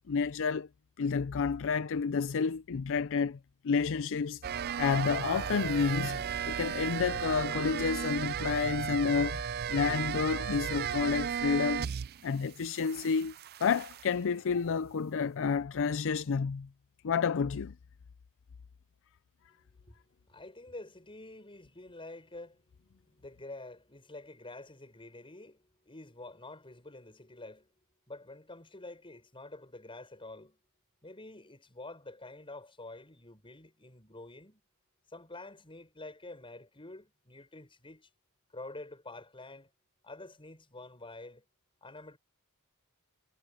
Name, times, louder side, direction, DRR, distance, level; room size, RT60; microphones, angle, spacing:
voice 1, 0.1-0.7 1.0-3.4 3.6-4.4 4.8-9.4 9.7-11.9 12.2-13.3 13.6-16.7 17.0-17.7, left 5 dB, 60° left, 0.5 m, -30 dB
sound 1, 4.4-12.3 12.6-14.1, right 8 dB, 45° right, 0.4 m, -35 dB
voice 2, 19.5-20.0 20.3-27.7 28.1-30.6 31.0-34.6 35.1-38.1 38.5-39.7 40.0-41.4 41.8-42.2, left 2 dB, 25° left, 6.6 m, -48 dB
head